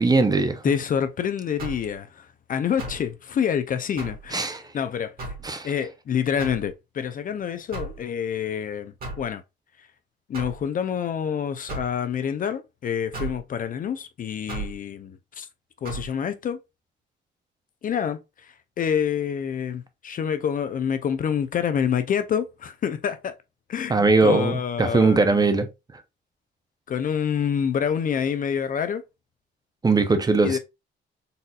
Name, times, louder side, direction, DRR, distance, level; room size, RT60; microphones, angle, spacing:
voice 1, 0.0-0.6 4.3-4.6 5.4-5.7 23.9-25.7 29.8-30.6, right 3 dB, 20° right, 0.5 m, -20 dB
voice 2, 0.6-5.2 5.6-9.4 9.8-9.9 10.3-15.5 15.8-16.6 17.8-23.3 23.7-25.4 26.9-29.0 30.4-30.6, left 8 dB, 45° left, 0.4 m, -27 dB
sound 1, 1.6-1.9 2.8-3.1 4.0-4.3 5.2-5.5 6.4-6.7 7.7-8.0 9.0-9.3 10.3-10.6 11.7-11.9 13.1-13.4 14.5-14.7 15.8-16.1, right 2 dB, 50° right, 1.9 m, -34 dB
4.0 x 2.6 x 2.2 m
cardioid pair, 90°, 20 cm